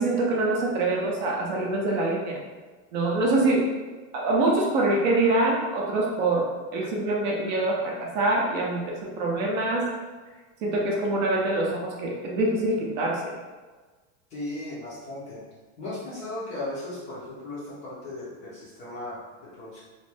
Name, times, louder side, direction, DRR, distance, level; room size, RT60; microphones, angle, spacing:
voice 1, 0.0-2.4 2.9-3.7 4.1-9.9 10.6-13.3, right 2 dB, 40° right, -2 dB, 0.5 m, -25 dB
voice 2, 14.3-15.4 15.8-19.8, left 2 dB, 20° left, -8 dB, 0.5 m, -36 dB
3.0 x 2.6 x 3.3 m, 1.3 s
supercardioid pair, 175°, 38 cm